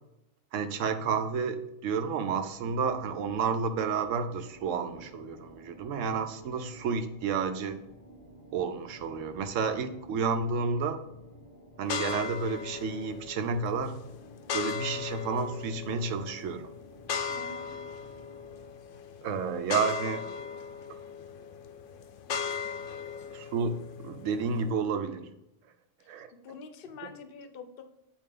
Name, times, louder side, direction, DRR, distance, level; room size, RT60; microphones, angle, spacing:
voice 1, 0.5-7.8 8.5-11.0 11.8-14.0 14.5-16.7 19.2-20.3 23.3-25.3 26.1-26.3, right 5 dB, 85° right, 9 dB, 1.0 m, -31 dB
sound 1, 2.5-18.7, equal, 15° left, 0.7 m, -53 dB
sound 2, 11.8-24.7, left 6 dB, 80° left, 0.9 m, -38 dB
voice 2, 17.3-17.8 26.0-27.8, left 5 dB, 55° left, 8 dB, 0.8 m, -46 dB
8.1 x 4.5 x 3.7 m, 0.86 s
omnidirectional pair, 1.3 m